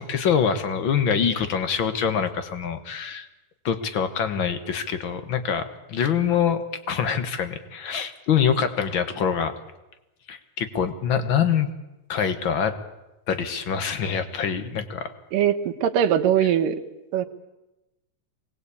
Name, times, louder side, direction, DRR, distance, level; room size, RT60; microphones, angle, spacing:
voice 1, 0.0-3.3 3.6-6.6 6.9-9.5 10.3-11.7 12.1-12.7 13.3-15.1, left 7 dB, 55° left, 10 dB, 1.4 m, -25 dB
voice 2, 15.3-16.8 17.1-17.3, right 9 dB, 80° right, 6 dB, 2.8 m, -21 dB
24.0 x 19.5 x 8.5 m, 1.0 s
omnidirectional pair, 3.9 m